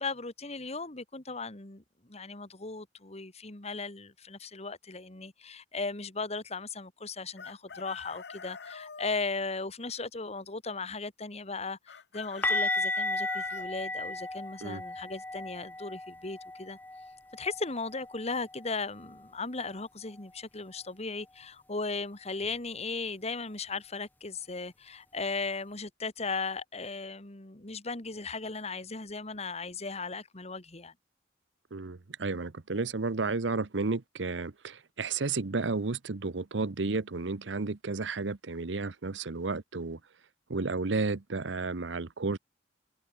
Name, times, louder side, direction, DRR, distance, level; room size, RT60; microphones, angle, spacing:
voice 1, 0.0-16.8 17.3-30.9, left 3 dB, 35° left, 2.0 m, -37 dB
Chicken rooster, 7.4-9.2 11.9-13.7, left 6 dB, 60° left, 1.0 m, -45 dB
sound 1, 12.4-18.2 18.5-18.7 19.0-19.2 22.4-22.5, left 2 dB, 10° left, 1.0 m, -34 dB
voice 2, 31.7-40.0 40.5-42.4, right 3 dB, 75° right, 0.9 m, -32 dB
head